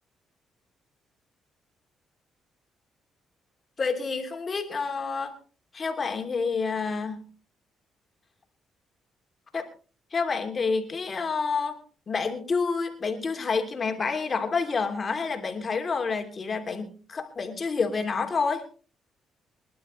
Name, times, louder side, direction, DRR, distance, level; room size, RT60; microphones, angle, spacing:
voice 1, 3.8-5.3 5.7-7.2 9.5-9.7 10.1-18.7, left 4 dB, 40° left, 4 dB, 3.0 m, -28 dB
25.0 x 11.5 x 3.2 m, 0.37 s
cardioid pair, 90°, 0 cm